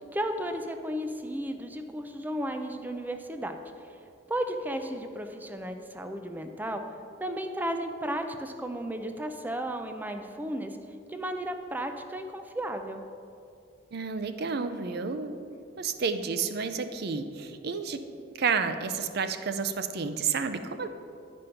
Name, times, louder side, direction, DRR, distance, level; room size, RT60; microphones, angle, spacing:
voice 1, 0.1-3.6 4.3-6.8 7.2-10.8 11.1-13.0, right 1 dB, 10° right, 6 dB, 0.4 m, -34 dB
voice 2, 13.9-15.4 15.8-18.0 18.3-20.9, right 5 dB, 60° right, 9 dB, 0.5 m, -30 dB
9.9 x 5.2 x 5.7 m, 2.5 s
head